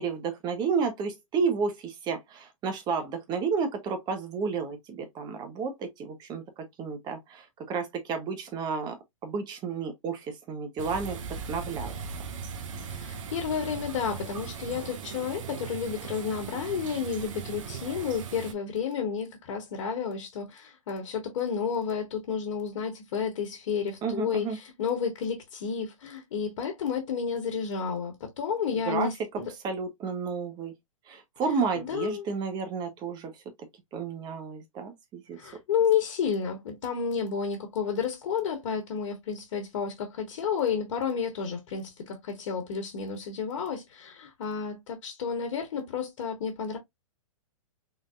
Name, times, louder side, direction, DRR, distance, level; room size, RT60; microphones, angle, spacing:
voice 1, 0.0-11.2 11.5-11.9 24.0-24.6 28.8-30.7 31.1-33.3 33.9-35.4, right 5 dB, 25° right, 1.0 m, -31 dB
sound 1, 10.8-18.5, right 6 dB, 65° right, 0.8 m, -39 dB
voice 2, 12.8-29.5 31.7-32.3 35.4-46.8, left 6 dB, 55° left, 1.3 m, -31 dB
3.8 x 2.6 x 2.5 m
hypercardioid pair, 135°, 18 cm